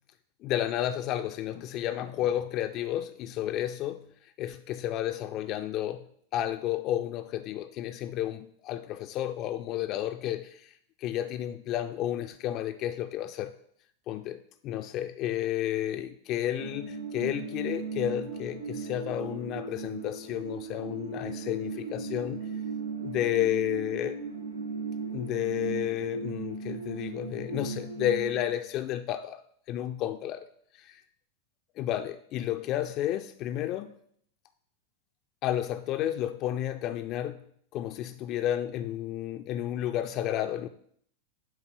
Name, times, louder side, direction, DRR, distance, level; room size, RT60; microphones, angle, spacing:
voice 1, 0.4-6.0 6.3-10.7 11.0-13.5 14.1-22.4 23.0-24.2 25.1-29.4 29.7-30.5 30.7-31.0 31.8-33.9 35.4-37.4 37.7-40.7, left 12 dB, 35° left, 0.3 m, -31 dB
sound 1, 16.6-28.5, right 4 dB, 85° right, 0.9 m, -37 dB
8.0 x 3.4 x 5.8 m
figure-of-eight pair, 90°, 0 cm